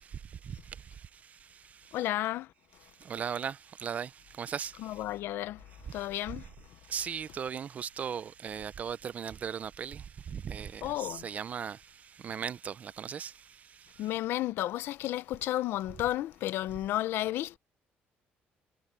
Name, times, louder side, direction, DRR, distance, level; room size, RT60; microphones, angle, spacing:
voice 1, 1.9-2.5 4.8-6.5 10.8-11.3 14.0-17.6, left 14 dB, 75° left, 0.7 m, -32 dB
voice 2, 3.1-3.5 3.8-4.1 4.4-4.7 6.9-10.0 10.3-11.8 12.2-13.3, right 7 dB, 40° right, 0.5 m, -36 dB
cardioid pair, 130°, 4 cm